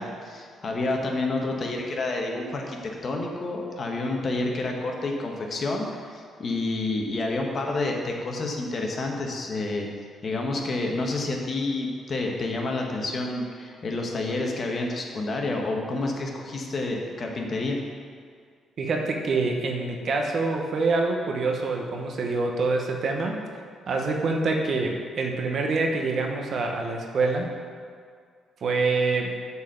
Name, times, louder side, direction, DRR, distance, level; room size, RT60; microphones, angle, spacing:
voice 1, 0.0-9.9 10.2-17.8, left 2 dB, 45° left, 1 dB, 1.2 m, -29 dB
voice 2, 18.8-23.4 23.9-27.5 28.6-29.3, right 3 dB, 55° right, 2 dB, 1.0 m, -26 dB
7.0 x 4.4 x 6.7 m, 2.1 s
cardioid pair, 90°, 0 cm